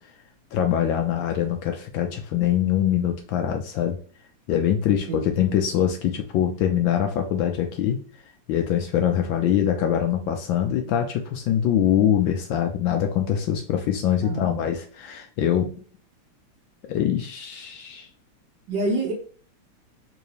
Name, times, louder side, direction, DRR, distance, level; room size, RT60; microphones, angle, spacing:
voice 1, 0.5-4.0 4.5-8.0 8.5-15.7 16.9-18.1, left 10 dB, 75° left, 4 dB, 1.2 m, -23 dB
voice 2, 14.2-14.7 18.7-19.1, right 2 dB, 65° right, 2 dB, 1.2 m, -27 dB
3.9 x 2.7 x 3.1 m, 0.43 s
omnidirectional pair, 2.4 m